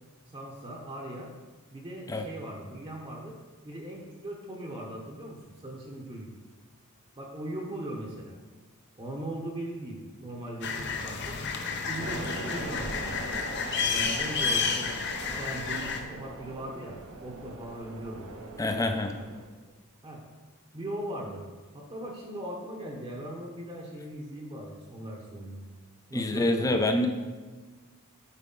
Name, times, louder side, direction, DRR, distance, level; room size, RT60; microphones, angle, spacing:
voice 1, 0.3-1.3 1.7-3.3 3.6-6.3 7.2-8.4 9.0-11.4 11.8-13.2 13.8-14.9 15.4-18.3 18.6-19.2 20.0-20.2 20.7-21.4 21.7-25.6 26.1-26.8, right 1 dB, 25° right, -1 dB, 0.9 m, -39 dB
sound 1, 10.6-16.0, left 5 dB, 55° left, 0.7 m, -31 dB
sound 2, 12.0-19.5, right 2 dB, 70° right, 0.8 m, -42 dB
voice 2, 18.6-19.1 26.1-27.1, left 2 dB, 15° left, 5 dB, 0.5 m, -26 dB
8.3 x 4.7 x 3.9 m, 1.3 s
head